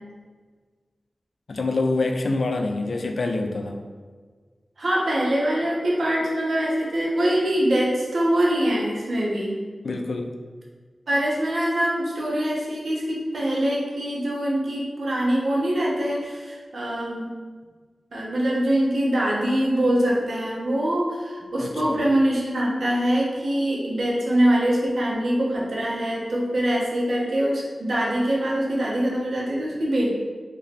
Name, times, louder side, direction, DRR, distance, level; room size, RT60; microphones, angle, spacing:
voice 1, 1.5-3.8 9.8-10.3 21.6-22.0, left 3 dB, 75° left, 4 dB, 0.4 m, -26 dB
voice 2, 4.8-9.5 11.1-17.3 18.1-30.1, right 1 dB, 75° right, -4 dB, 0.9 m, -23 dB
3.0 x 2.9 x 4.2 m, 1.5 s
cardioid pair, 50°, 0 cm